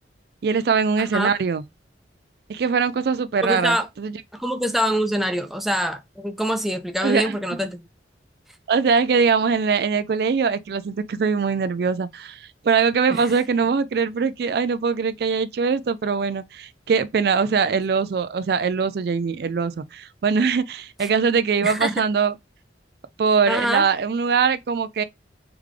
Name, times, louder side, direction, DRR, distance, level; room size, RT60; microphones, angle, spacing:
voice 1, 0.4-1.6 2.5-4.2 7.0-7.4 8.7-22.3 23.2-25.0, right 5 dB, 60° right, 0.4 m, -22 dB
voice 2, 3.4-3.9 4.3-7.9 13.1-13.2 21.0-21.1 21.6-22.0 23.5-23.9, equal, ahead, 0.5 m, -25 dB
3.7 x 3.5 x 3.1 m
head